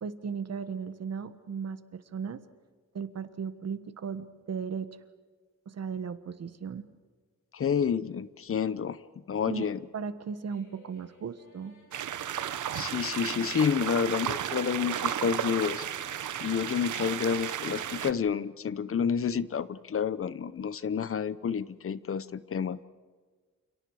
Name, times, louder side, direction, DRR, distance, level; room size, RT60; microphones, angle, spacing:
voice 1, 0.0-2.4 2.9-4.9 5.6-6.9 9.4-9.6 9.9-11.7, right 6 dB, 60° right, 11 dB, 1.5 m, -36 dB
voice 2, 7.5-9.0 9.3-9.8 12.7-15.9 16.4-22.8, left 7 dB, 45° left, 16 dB, 0.8 m, -29 dB
sound 1, 10.5-17.1, left 3 dB, 85° left, 7.0 m, -59 dB
sound 2, 11.9-18.1, right 10 dB, 85° right, 1.1 m, -33 dB
29.0 x 28.5 x 4.9 m, 1.5 s
wide cardioid pair, 140°, 30 cm